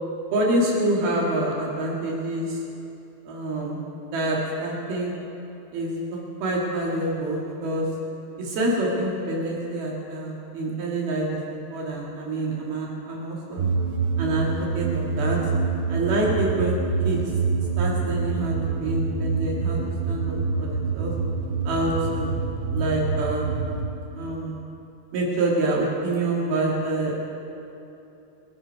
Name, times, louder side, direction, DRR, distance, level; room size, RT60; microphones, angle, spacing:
voice 1, 0.3-2.6 3.3-3.8 4.1-5.1 5.7-7.9 8.4-13.7 14.2-15.4 15.9-16.8 17.0-17.2 17.8-19.8 20.1-21.1 21.6-22.3 22.7-23.5 24.1-24.6 25.1-27.3, right 1 dB, 60° right, -3 dB, 3.8 m, -26 dB
sound 1, 13.6-23.9, right 4 dB, 85° right, 3.9 m, -26 dB
23.5 x 13.5 x 4.7 m, 2.8 s
omnidirectional pair, 5.5 m